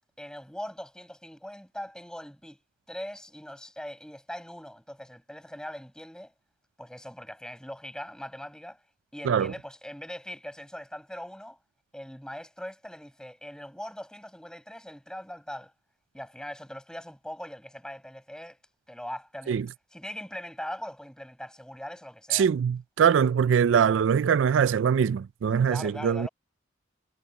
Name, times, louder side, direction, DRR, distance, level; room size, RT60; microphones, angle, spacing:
voice 1, 0.2-2.6 2.9-6.3 6.8-8.8 9.1-11.6 11.9-15.7 16.1-18.6 18.9-19.6 19.9-22.5 25.7-26.3, equal, 5° left, 7.5 m, -41 dB
voice 2, 22.3-26.3, right 7 dB, 70° right, 0.3 m, -23 dB
head